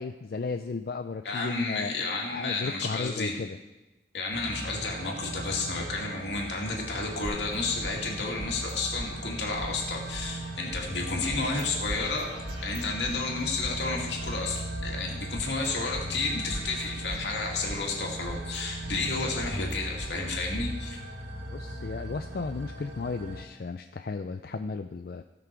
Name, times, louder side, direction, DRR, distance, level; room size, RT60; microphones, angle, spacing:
voice 1, 0.0-1.9 2.3-3.6 21.5-25.2, left 4 dB, 55° left, 7 dB, 0.4 m, -34 dB
voice 2, 1.2-3.3 4.1-21.0, left 3 dB, 80° left, -1 dB, 2.3 m, -31 dB
sound 1, 4.3-23.4, right 1 dB, 75° right, 1.6 m, -38 dB
sound 2, 7.2-8.7 9.0-9.1 9.6-10.8 11.3-11.6 11.9-13.7 14.2-15.7 15.9-16.0 16.5-17.9 18.2-20.1 20.6-20.7, right 1 dB, 30° right, 3.7 m, -41 dB
16.5 x 6.1 x 4.6 m, 1.1 s
head